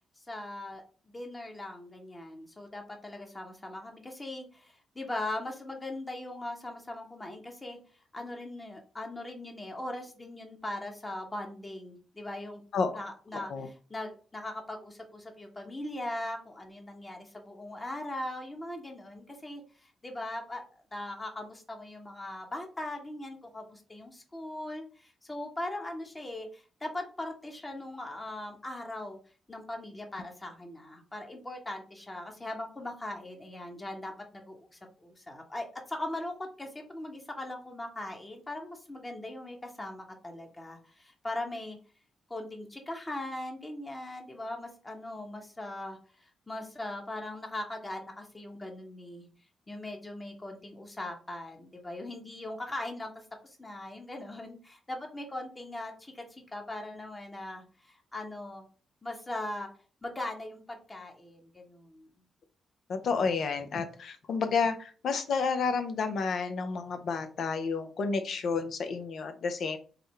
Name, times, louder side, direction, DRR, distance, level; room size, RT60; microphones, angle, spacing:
voice 1, 0.3-7.8 8.1-12.6 12.9-20.6 20.9-29.2 29.5-41.8 42.3-49.3 49.7-58.7 59.0-59.7 60.0-62.1, left 1 dB, 25° left, 2 dB, 0.9 m, -40 dB
voice 2, 13.3-13.7 62.9-69.8, left 5 dB, 65° left, 8 dB, 0.5 m, -30 dB
3.6 x 2.1 x 3.2 m, 0.38 s
hypercardioid pair, 45°, 0 cm